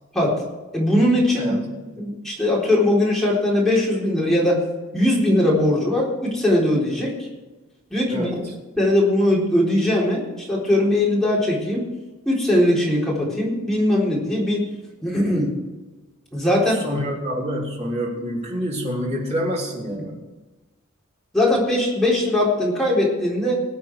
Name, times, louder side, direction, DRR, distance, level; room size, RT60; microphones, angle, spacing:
voice 1, 0.7-1.5 2.0-4.6 4.9-7.3 7.9-8.4 8.8-11.9 12.3-14.6 15.0-15.5 16.3-16.8 21.3-23.6, left 1 dB, ahead, -5 dB, 3.9 m, -20 dB
voice 2, 1.4-1.7 1.9-2.1 8.1-8.4 16.7-20.2, equal, 30° right, -4 dB, 3.7 m, -27 dB
20.0 x 8.1 x 4.8 m, 1.2 s
head